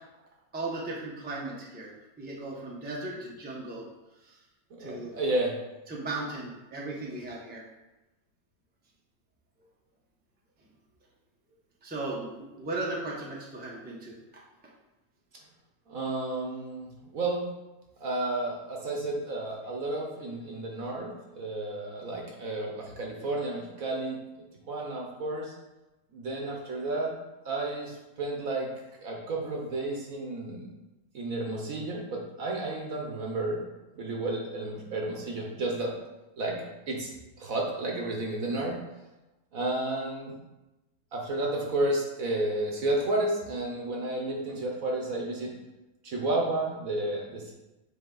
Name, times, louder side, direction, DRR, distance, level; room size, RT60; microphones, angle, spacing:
voice 1, 0.5-1.9 2.2-3.8 4.2-4.4 4.8-5.1 5.9-7.6 11.8-14.2, right 2 dB, 10° right, -4 dB, 0.7 m, -36 dB
voice 2, 4.7-5.6 15.9-17.6 18.0-24.2 24.7-25.5 26.1-27.1 27.4-28.7 29.0-30.8 31.1-33.6 34.0-35.9 36.4-37.1 37.4-38.8 39.5-40.4 41.1-45.5 46.0-47.5, right 2 dB, 55° right, -1 dB, 1.3 m, -32 dB
7.7 x 3.4 x 3.9 m, 1.0 s
omnidirectional pair, 1.9 m